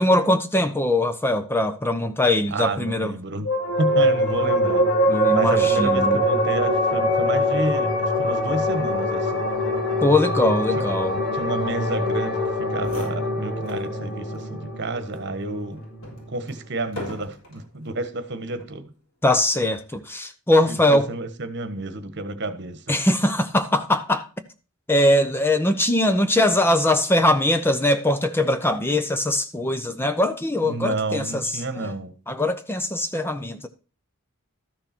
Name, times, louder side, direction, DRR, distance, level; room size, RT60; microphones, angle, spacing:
voice 1, 0.0-3.1 5.1-6.2 10.0-11.2 19.2-21.1 22.9-24.3 24.9-31.5 31.8-31.9 32.3-33.7, left 1 dB, 10° left, 0.7 m, -21 dB
voice 2, 2.5-3.5 3.8-4.8 5.3-9.4 10.8-10.9 11.3-15.8 16.3-18.9 20.7-23.0 30.6-32.1, right 2 dB, 55° right, 1.4 m, -30 dB
sound 1, 3.4-16.3, equal, 55° left, 2.4 m, -23 dB
sound 2, 12.5-12.6 12.8-13.9 14.3-14.5 15.1-17.7 18.5-18.8, left 1 dB, 90° left, 5.1 m, -40 dB
13.0 x 6.6 x 4.4 m
head